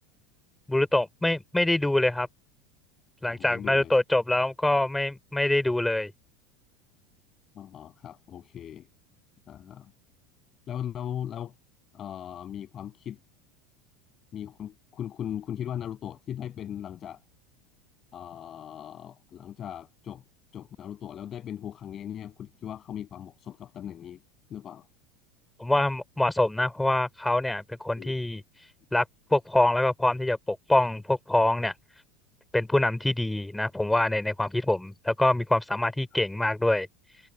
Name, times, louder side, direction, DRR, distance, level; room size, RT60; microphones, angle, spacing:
voice 1, 0.7-2.3 3.2-6.1 25.6-28.4 28.9-29.0 29.3-31.7 32.5-36.9, left 1 dB, 5° left, 4.8 m, -25 dB
voice 2, 3.3-4.0 7.5-8.9 9.5-9.9 10.7-11.5 11.9-13.2 14.3-17.2 18.1-20.2 20.5-24.2 24.5-24.9 28.0-28.1, left 10 dB, 35° left, 7.7 m, -38 dB
figure-of-eight pair, 75°, 0 cm